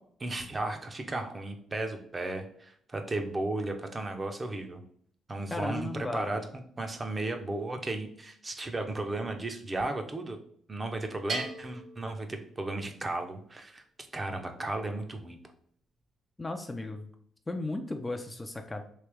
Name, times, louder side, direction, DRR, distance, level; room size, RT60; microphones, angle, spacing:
voice 1, 0.2-4.8 5.3-10.4 10.7-13.8 14.1-15.4, right 2 dB, 25° right, 5 dB, 0.6 m, -35 dB
voice 2, 5.5-6.4 16.4-17.1 17.5-18.8, left 2 dB, 20° left, 5 dB, 0.4 m, -35 dB
Bell, 11.3-13.0, right 3 dB, 50° right, 0.9 m, -39 dB
3.2 x 2.9 x 3.4 m, 0.62 s
cardioid pair, 90°, 0 cm